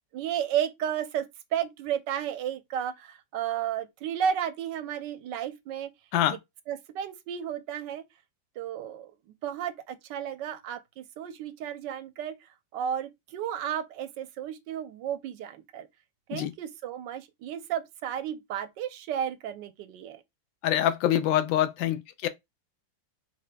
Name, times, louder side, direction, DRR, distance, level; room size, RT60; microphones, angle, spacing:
voice 1, 0.1-5.9 6.7-8.1 8.6-15.9 16.3-20.2, right 9 dB, 75° right, 1.2 m, -33 dB
voice 2, 20.6-22.3, left 12 dB, 80° left, 1.3 m, -25 dB
5.8 x 3.1 x 2.2 m
omnidirectional pair, 2.1 m